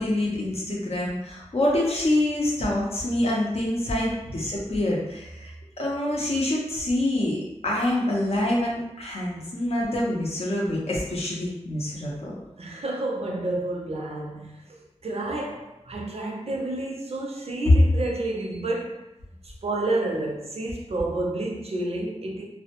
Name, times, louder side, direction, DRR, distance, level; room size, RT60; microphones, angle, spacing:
voice 1, 0.0-5.5 5.8-12.3, left 1 dB, 60° left, 0.6 m, -26 dB
voice 2, 12.6-19.1 19.4-22.5, right 2 dB, 60° right, 0.5 m, -30 dB
2.1 x 2.0 x 2.8 m
wide cardioid pair, 70°, 12 cm